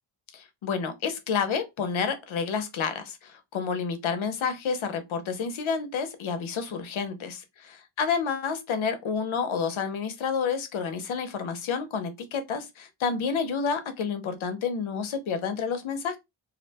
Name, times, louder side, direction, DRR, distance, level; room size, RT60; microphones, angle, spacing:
voice 1, 0.3-16.2, left 6 dB, 85° left, 0.7 m, -29 dB
2.5 x 2.1 x 2.7 m
wide cardioid pair, 170°, 46 cm